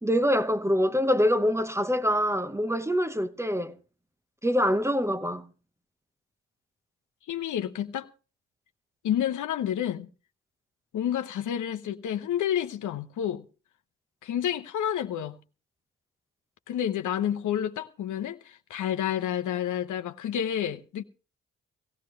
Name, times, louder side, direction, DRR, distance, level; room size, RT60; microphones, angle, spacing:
voice 1, 0.0-3.8 4.4-5.5, equal, 10° right, 1.0 m, -25 dB
voice 2, 7.3-8.1 9.0-10.1 10.9-13.4 14.2-15.4 16.7-21.0, left 10 dB, 65° left, 0.9 m, -29 dB
17.5 x 16.0 x 3.2 m
hypercardioid pair, 45°, 33 cm